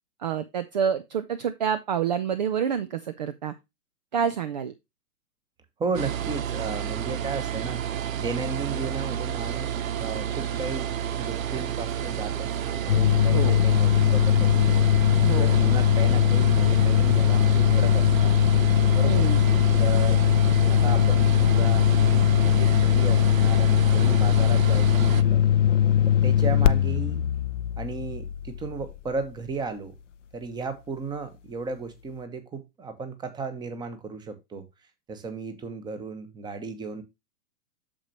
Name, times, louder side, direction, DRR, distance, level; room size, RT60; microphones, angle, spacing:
voice 1, 0.2-3.5 4.1-4.7 13.3-13.6 15.2-15.6 19.0-19.4, right 8 dB, 30° right, 0.4 m, -28 dB
voice 2, 5.8-7.8 8.2-10.9 11.2-18.3 18.9-19.3 19.8-20.3 20.7-25.4 26.1-27.2 27.8-29.9 30.3-34.6 35.1-37.0, right 4 dB, 10° right, 1.0 m, -35 dB
sound 1, 5.9-25.2, right 9 dB, 60° right, 0.8 m, -30 dB
sound 2, 12.9-29.2, left 10 dB, 50° left, 0.5 m, -20 dB
8.7 x 6.8 x 2.9 m
figure-of-eight pair, 115°, 46 cm